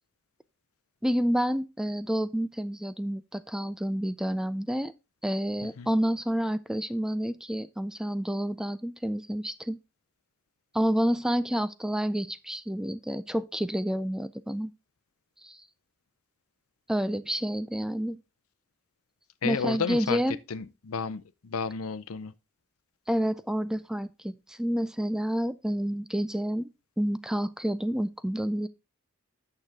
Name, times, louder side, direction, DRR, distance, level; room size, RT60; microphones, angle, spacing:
voice 1, 1.0-4.9 5.2-9.8 10.7-14.7 15.4-15.6 16.9-18.2 19.4-20.4 23.1-26.7 27.0-28.7, equal, 5° right, 0.3 m, -29 dB
voice 2, 19.4-22.3, left 6 dB, 85° left, 0.6 m, -32 dB
8.9 x 6.6 x 3.5 m
head